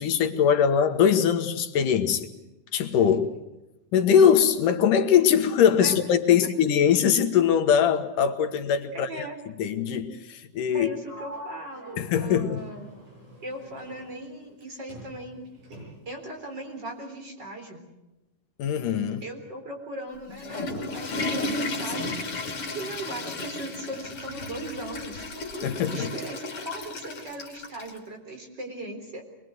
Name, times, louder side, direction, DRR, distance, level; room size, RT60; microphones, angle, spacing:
voice 1, 0.0-2.3 2.7-3.3 3.9-9.3 9.6-10.9 12.0-12.6 18.6-19.2 25.6-26.1, left 8 dB, 75° left, 7 dB, 2.9 m, -22 dB
voice 2, 8.9-9.4 10.7-12.9 13.4-15.4 16.1-17.8 19.2-25.3 25.8-29.2, right 1 dB, 30° right, 3 dB, 4.4 m, -38 dB
Sliding door, 11.0-14.6 14.9-16.2, equal, 65° right, 9.4 m, -45 dB
Water / Toilet flush, 20.1-28.0, left 2 dB, 45° left, 3.6 m, -33 dB
24.5 x 21.5 x 8.0 m, 0.99 s
omnidirectional pair, 3.8 m